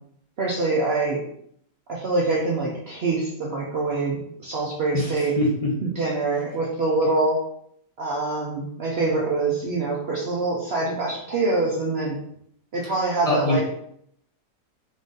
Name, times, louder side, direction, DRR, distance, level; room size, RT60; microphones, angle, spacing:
voice 1, 0.4-1.2 1.9-5.3 5.8-7.4 8.0-12.2 12.7-13.6, right 3 dB, 80° right, -3 dB, 0.5 m, -25 dB
voice 2, 4.9-5.7 13.2-13.6, left 2 dB, 45° left, -4 dB, 0.4 m, -23 dB
3.8 x 2.5 x 3.7 m, 0.69 s
omnidirectional pair, 1.9 m